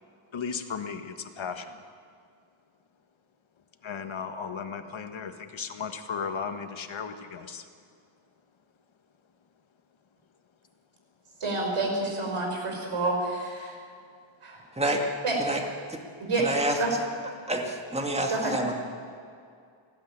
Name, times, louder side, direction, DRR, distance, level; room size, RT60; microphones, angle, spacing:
voice 1, 0.3-1.7 3.8-7.6, left 6 dB, 65° left, 7 dB, 1.5 m, -35 dB
voice 2, 11.4-13.7 14.4-14.6 15.2-15.4 16.2-16.5 16.8-16.9 18.3-18.5, right 2 dB, 75° right, 1 dB, 5.1 m, -28 dB
voice 3, 16.4-16.8 17.5-18.8, right 1 dB, 10° right, 2 dB, 2.2 m, -28 dB
19.0 x 16.0 x 8.8 m, 2.3 s
wide cardioid pair, 130°, 50 cm